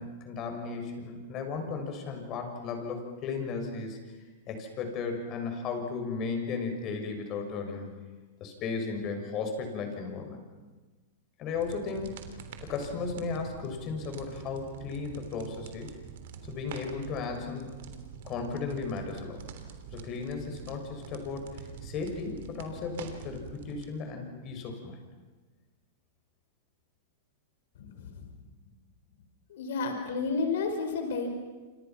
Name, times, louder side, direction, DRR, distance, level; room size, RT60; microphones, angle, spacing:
voice 1, 0.0-4.0 4.5-7.9 8.4-10.4 11.4-12.2 12.7-15.9 16.5-17.7 18.2-19.4 19.9-25.0, left 4 dB, 35° left, 4 dB, 6.6 m, -35 dB
sound 1, 11.5-23.9, right 7 dB, 70° right, 3.2 m, -45 dB
voice 2, 27.8-28.2 29.5-31.3, left 4 dB, 75° left, 5 dB, 5.4 m, -31 dB
28.5 x 26.5 x 6.0 m, 1.2 s
hypercardioid pair, 135°, 0 cm